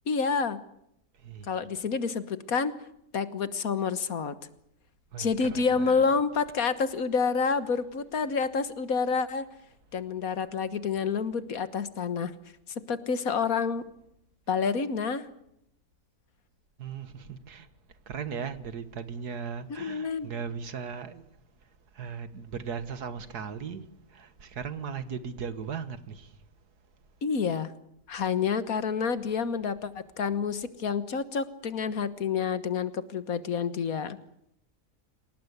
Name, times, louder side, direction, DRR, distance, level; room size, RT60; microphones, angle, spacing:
voice 1, 0.1-0.6 1.5-2.7 3.1-4.3 5.2-9.5 9.9-12.3 12.9-13.9 14.5-15.3 19.7-20.3 27.2-27.7 28.1-34.2, left 5 dB, 65° left, 1.7 m, -28 dB
voice 2, 1.2-1.6 5.1-6.1 16.8-17.7 18.1-21.2 21.9-26.3 28.1-28.2, right 6 dB, 85° right, 2.0 m, -38 dB
27.5 x 18.0 x 8.2 m
omnidirectional pair, 1.6 m